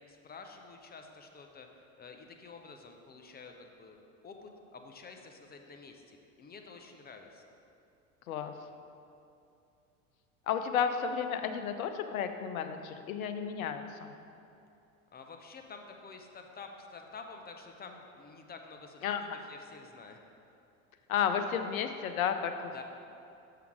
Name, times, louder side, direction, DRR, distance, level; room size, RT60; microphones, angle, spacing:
voice 1, 0.1-4.0 4.2-7.4 15.1-20.2 22.7-22.8, left 4 dB, 25° left, 4 dB, 0.7 m, -49 dB
voice 2, 10.5-14.1 19.0-19.4 21.1-22.8, left 7 dB, 80° left, 8 dB, 0.7 m, -32 dB
7.1 x 5.8 x 4.8 m, 2.6 s
hypercardioid pair, 85°, 41 cm